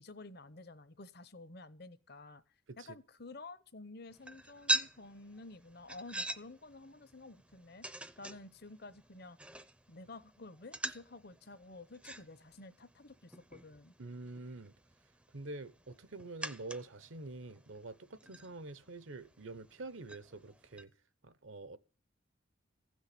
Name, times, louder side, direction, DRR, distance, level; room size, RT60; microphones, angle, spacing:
voice 1, 0.0-2.4 2.8-7.9 8.2-9.4 9.9-13.9, left 2 dB, 50° left, 0.9 m, -51 dB
sound 1, 4.1-20.8, right 1 dB, 5° right, 0.6 m, -44 dB
voice 2, 14.0-14.7 15.3-20.9 21.2-21.8, right 2 dB, 70° right, 1.0 m, -46 dB
16.0 x 6.4 x 9.9 m
head